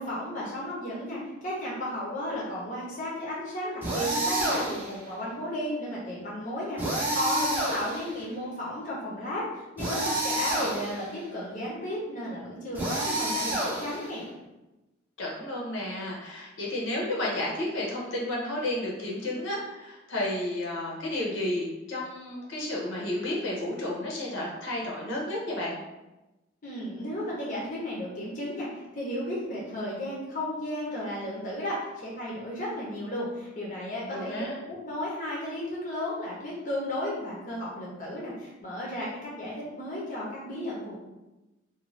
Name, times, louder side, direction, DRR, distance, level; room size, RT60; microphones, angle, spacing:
voice 1, 0.0-14.3 26.6-40.9, left 1 dB, 40° left, -5 dB, 0.6 m, -34 dB
sound 1, 3.8-5.0 6.8-8.2 9.8-11.1 12.7-14.2, right 1 dB, 10° right, 0.5 m, -29 dB
voice 2, 15.2-25.7 34.1-34.5, left 1 dB, 75° left, -3 dB, 0.8 m, -32 dB
2.5 x 2.2 x 3.1 m, 1.0 s
head